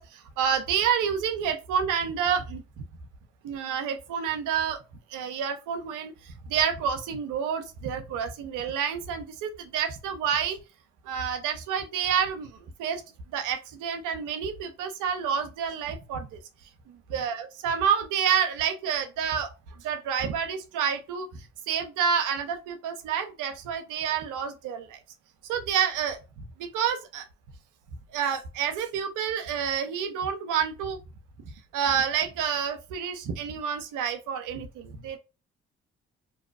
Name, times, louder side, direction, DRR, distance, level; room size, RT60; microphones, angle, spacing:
voice 1, 0.0-2.6 3.4-4.8 5.1-10.6 11.0-12.5 12.8-13.0 13.3-16.4 17.1-19.5 19.8-25.0 25.5-26.2 26.6-27.3 28.1-31.0 31.5-35.2, right 7 dB, 75° right, 0.5 m, -29 dB
2.6 x 2.2 x 2.2 m
hypercardioid pair, 40°, 32 cm